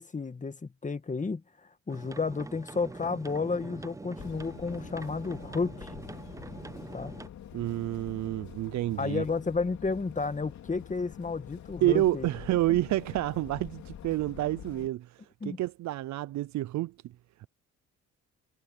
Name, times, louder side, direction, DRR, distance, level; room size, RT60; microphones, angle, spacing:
voice 1, 0.0-1.4 1.9-5.9 6.9-7.1 9.0-12.3 15.4-15.6, left 4 dB, 25° left, 1.8 m, -32 dB
sound 1, 1.9-7.3, right 3 dB, 10° right, 0.5 m, -44 dB
sound 2, 4.2-14.9, left 10 dB, 65° left, 2.9 m, -46 dB
voice 2, 7.5-9.2 11.8-17.1, right 15 dB, 70° right, 0.5 m, -29 dB
cardioid pair, 90°, 30 cm